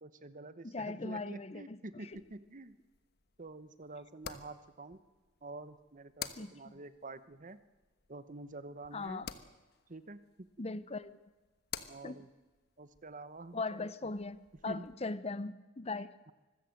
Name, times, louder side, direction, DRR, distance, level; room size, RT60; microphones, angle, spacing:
voice 1, 0.0-2.8 3.4-5.0 5.4-7.6 8.1-9.2 9.9-10.2 10.6-10.7 11.9-12.3 12.8-14.1 14.7-14.9, right 2 dB, 40° right, 13 dB, 1.0 m, -48 dB
voice 2, 0.6-1.8 2.1-2.2 6.4-6.5 8.9-9.3 10.6-11.2 12.0-12.2 13.5-16.1, left 3 dB, 30° left, 15 dB, 0.7 m, -39 dB
sound 1, 2.1-14.9, left 8 dB, 50° left, 1.2 m, -52 dB
25.0 x 15.0 x 7.8 m, 1.2 s
head